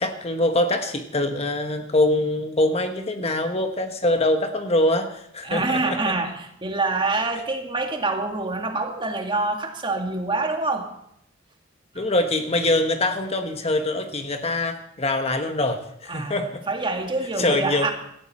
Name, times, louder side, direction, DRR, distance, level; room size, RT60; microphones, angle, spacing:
voice 1, 0.0-6.1 11.9-16.6 17.4-17.9, left 1 dB, 30° left, 7 dB, 1.2 m, -24 dB
voice 2, 5.4-10.9 16.1-16.4 16.7-17.9, right 3 dB, 25° right, 4 dB, 2.0 m, -26 dB
18.0 x 14.0 x 4.3 m, 0.73 s
head